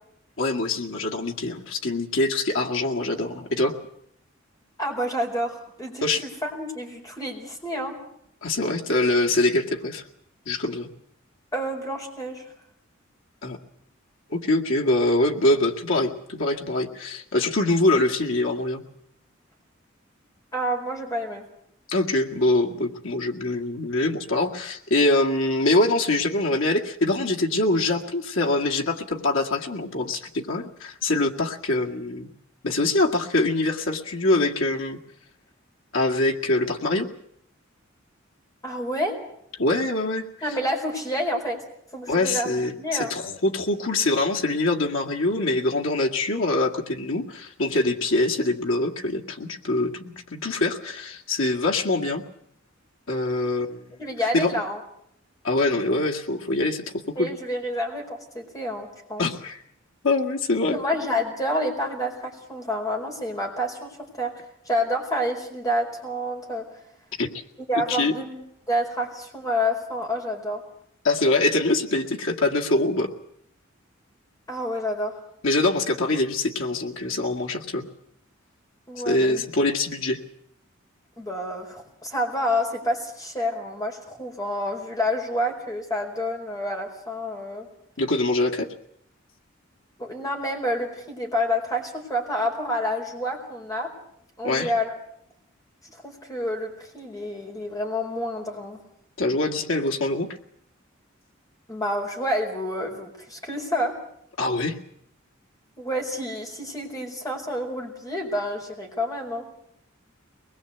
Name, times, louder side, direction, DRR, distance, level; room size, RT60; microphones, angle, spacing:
voice 1, 0.4-3.7 6.0-6.2 8.4-10.0 10.5-10.9 13.4-13.6 14.3-18.8 21.9-32.3 32.6-35.0 35.9-37.1 39.6-40.3 42.1-52.2 53.1-53.9 54.3-54.6 55.4-56.8 57.2-57.3 59.2-59.6 60.0-60.8 67.2-67.3 67.9-68.1 71.0-73.1 75.4-77.8 79.0-80.2 88.0-88.7 94.4-94.7 99.2-100.3 104.4-104.8, left 2 dB, 75° left, 1 dB, 2.1 m, -24 dB
voice 2, 4.8-8.0 11.5-12.5 20.5-21.4 38.6-39.2 40.4-41.6 41.9-43.1 54.0-54.8 57.2-59.2 60.7-66.7 67.7-68.4 68.7-70.6 74.5-75.2 78.9-79.5 81.2-87.7 90.0-93.9 94.4-94.9 95.9-98.8 101.7-103.9 105.8-109.5, equal, 20° left, 2 dB, 4.5 m, -28 dB
22.5 x 20.5 x 8.1 m, 0.74 s
head